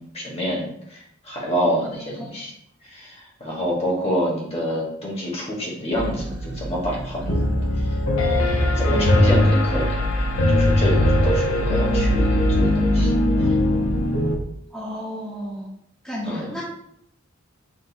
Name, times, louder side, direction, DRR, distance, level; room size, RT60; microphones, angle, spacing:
voice 1, 0.0-2.5 2.8-7.4 7.7-8.0 8.4-10.0 10.5-13.1 13.4-13.6 16.2-16.6, equal, 30° left, -3 dB, 1.2 m, -28 dB
sound 1, 5.9-14.4, right 2 dB, 75° right, 0.7 m, -29 dB
Piano, 7.3-14.3, left 1 dB, 85° left, 0.7 m, -20 dB
voice 2, 14.7-15.7 16.0-16.6, equal, 5° left, -7 dB, 0.8 m, -32 dB
6.0 x 2.6 x 2.6 m, 0.72 s
head